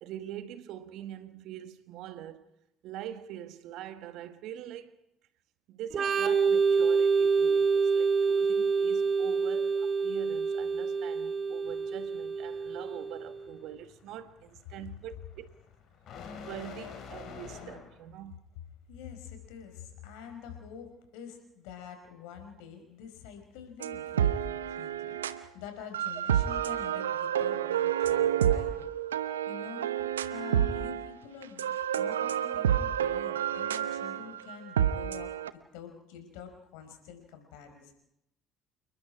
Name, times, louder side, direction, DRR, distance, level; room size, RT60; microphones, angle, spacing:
voice 1, 0.0-2.5 2.8-5.0 5.7-15.5 16.3-18.4, right 11 dB, 60° right, 1.6 m, -44 dB
Organ, 5.9-13.4, right 5 dB, 45° right, 2.3 m, -27 dB
sound 1, 11.7-18.1, left 6 dB, 50° left, 4.7 m, -48 dB
voice 2, 18.9-28.8 29.5-29.9 30.3-35.3 35.7-37.9, left 7 dB, 70° left, 5.1 m, -47 dB
sound 2, 23.8-25.4 25.9-31.1 31.4-35.5, right 10 dB, 80° right, 0.8 m, -29 dB
29.0 x 20.5 x 4.8 m
figure-of-eight pair, 55°, 0 cm